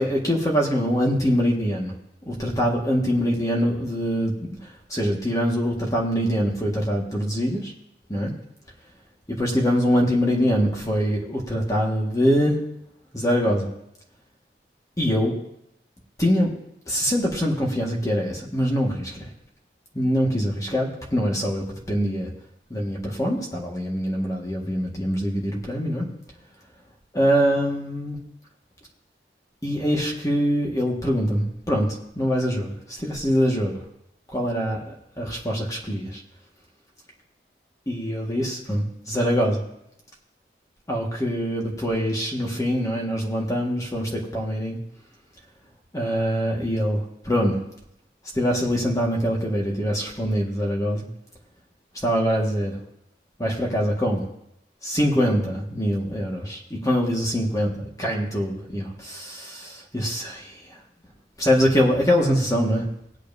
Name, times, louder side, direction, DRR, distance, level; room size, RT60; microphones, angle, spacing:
voice 1, 0.0-1.9 2.3-4.3 4.9-7.7 8.1-8.3 9.4-12.6 13.1-13.7 15.0-15.3 16.2-16.5 16.9-19.1 19.9-22.3 22.7-26.1 27.1-28.2 29.6-31.9 32.2-33.8 34.3-36.2 37.9-39.6 40.9-44.8 45.9-47.6 48.3-51.1 52.0-52.8 53.4-54.2 54.8-57.7 58.0-60.5 61.4-62.8, equal, 20° left, -1 dB, 1.7 m, -24 dB
20.0 x 8.2 x 2.7 m, 0.80 s
head